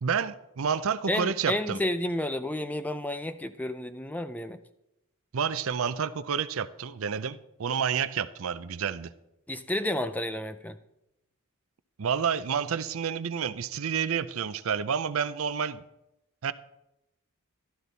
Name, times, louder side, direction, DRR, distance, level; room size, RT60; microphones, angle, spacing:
voice 1, 0.0-1.8 5.3-9.1 12.0-15.8 16.4-16.5, right 7 dB, 70° right, 14 dB, 0.5 m, -29 dB
voice 2, 1.1-4.6 9.5-10.8, left 1 dB, 5° left, 11 dB, 0.4 m, -31 dB
12.5 x 12.0 x 4.0 m, 0.88 s
head